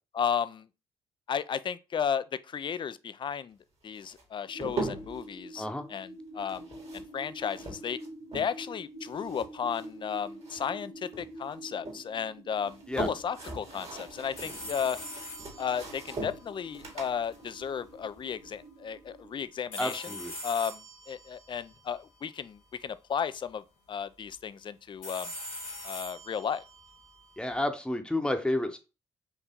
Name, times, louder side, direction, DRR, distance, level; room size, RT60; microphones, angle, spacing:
voice 1, 0.1-0.7 1.3-3.6 3.8-6.1 6.3-6.6 6.9-8.0 8.3-15.0 15.6-20.1 20.4-23.6 23.9-25.3 25.8-26.6, left 7 dB, 35° left, 0.4 m, -34 dB
sound 1, 4.0-5.3 6.4-8.7 9.0-10.8 11.1-12.0 12.5-18.6, right 2 dB, 50° right, 1.9 m, -41 dB
sound 2, 4.5-19.5, right 1 dB, 85° right, 1.7 m, -48 dB
voice 2, 5.6-5.9 12.9-13.1 19.8-20.3 27.4-28.8, left 1 dB, 5° left, 0.9 m, -30 dB
sound 3, 14.4-17.4 19.7-22.8 25.0-27.6, left 1 dB, 70° left, 1.5 m, -44 dB
4.4 x 2.8 x 3.6 m
hypercardioid pair, 50°, 13 cm